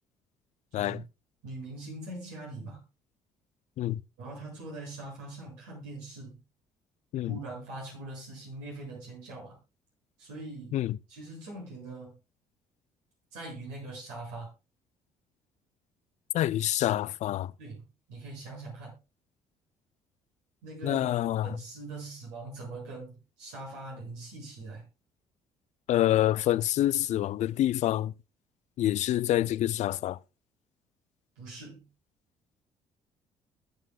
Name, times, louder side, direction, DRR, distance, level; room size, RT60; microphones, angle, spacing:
voice 1, 0.7-1.0 1.4-2.8 4.2-6.4 7.2-9.6 10.2-10.8 11.1-12.2 13.3-14.5 17.6-17.8 18.1-19.0 20.6-21.1 21.4-24.8 31.4-31.9, right 2 dB, 75° right, 7.5 m, -42 dB
voice 2, 16.3-17.5 20.8-21.6 25.9-28.1 28.8-30.2, left 13 dB, 55° left, 0.5 m, -27 dB
21.5 x 7.4 x 2.4 m
hypercardioid pair, 50°, 14 cm